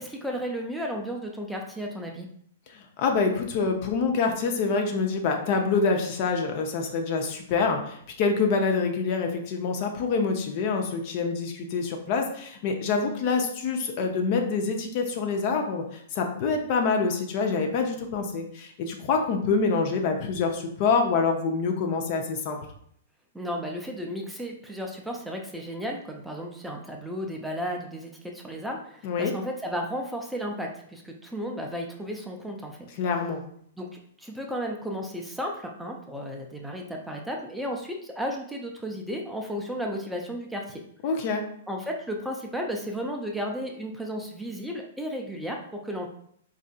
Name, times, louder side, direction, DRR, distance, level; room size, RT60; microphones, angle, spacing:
voice 1, 0.0-2.3 23.3-32.8 33.8-33.9 34.2-40.8 41.7-46.1, equal, 5° right, 1 dB, 0.5 m, -34 dB
voice 2, 2.7-22.6 29.0-29.4 33.0-33.4 41.0-41.4, left 4 dB, 45° left, 3 dB, 0.6 m, -26 dB
4.2 x 2.5 x 2.3 m, 0.65 s
hypercardioid pair, 115°, 0 cm